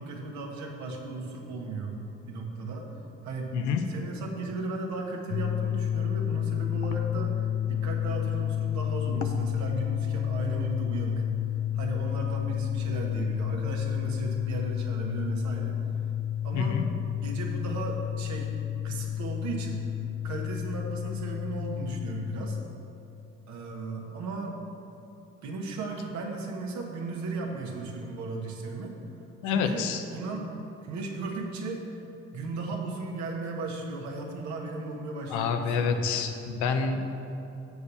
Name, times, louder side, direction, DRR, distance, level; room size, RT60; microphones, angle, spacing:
voice 1, 0.0-2.0 2.3-2.9 3.2-3.5 3.9-11.2 11.7-15.8 16.4-16.8 17.2-18.5 18.8-19.9 20.2-22.6 23.5-24.6 25.4-28.9 29.4-30.5 30.8-31.8 32.3-36.1, right 3 dB, 70° right, 1 dB, 1.2 m, -36 dB
sound 1, 5.3-22.7, left 10 dB, 35° left, 0.4 m, -30 dB
voice 2, 29.4-30.0 35.3-37.2, left 6 dB, 75° left, 6 dB, 0.7 m, -28 dB
6.8 x 4.7 x 6.8 m, 2.8 s
hypercardioid pair, 50°, 30 cm